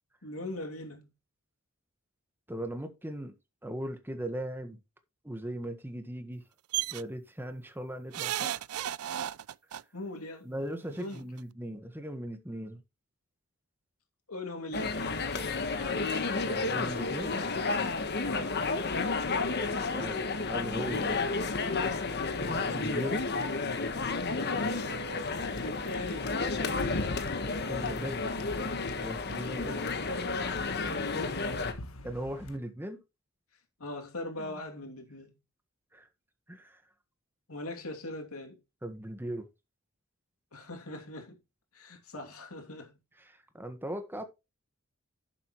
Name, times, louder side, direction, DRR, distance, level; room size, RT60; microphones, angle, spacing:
voice 1, 0.2-1.1 9.9-10.5 11.0-11.3 14.3-16.1 18.2-18.6 24.2-26.3 29.6-31.5 33.8-35.3 37.5-38.6 40.5-41.4 41.7-42.9, left 2 dB, 85° left, 2.8 m, -41 dB
voice 2, 2.5-3.3 3.6-4.8 5.2-6.4 6.9-8.6 10.4-12.8 14.7-14.8 16.4-17.8 19.9-21.2 22.4-23.4 27.7-28.4 29.0-29.8 32.0-33.0 34.4-34.5 35.9-36.1 36.5-36.8 38.8-39.5 43.2-44.2, right 1 dB, 10° right, 1.4 m, -39 dB
sound 1, 6.7-7.0 8.1-9.8 11.0-11.1 11.4-11.5, right 12 dB, 85° right, 0.4 m, -33 dB
sound 2, 14.7-31.7, left 3 dB, 50° left, 1.3 m, -31 dB
sound 3, 25.2-32.6, left 1 dB, 70° left, 1.4 m, -43 dB
11.0 x 7.4 x 3.1 m
head